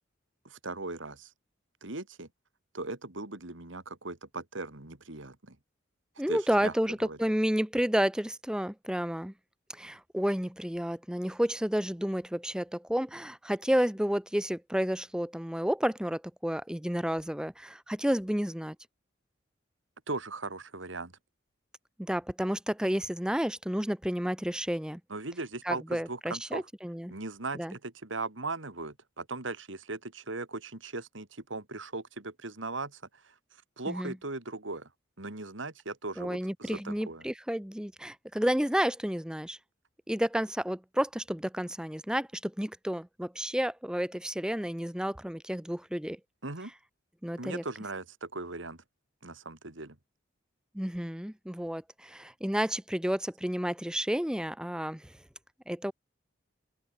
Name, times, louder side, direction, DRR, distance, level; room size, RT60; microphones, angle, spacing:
voice 1, 0.4-1.3 1.8-2.3 2.7-5.6 6.3-6.7 7.0-7.2 20.1-21.1 25.1-26.6 27.1-33.3 33.8-34.9 35.2-37.2 46.4-46.7 47.4-48.8 49.2-50.0, right 3 dB, 80° right, 2.7 m, -38 dB
voice 2, 6.2-9.3 9.7-18.8 22.0-25.0 25.6-27.1 27.5-27.7 33.9-34.1 36.2-39.6 40.1-46.2 47.2-47.6 50.7-55.2 55.7-55.9, equal, 5° right, 0.7 m, -31 dB
open air
head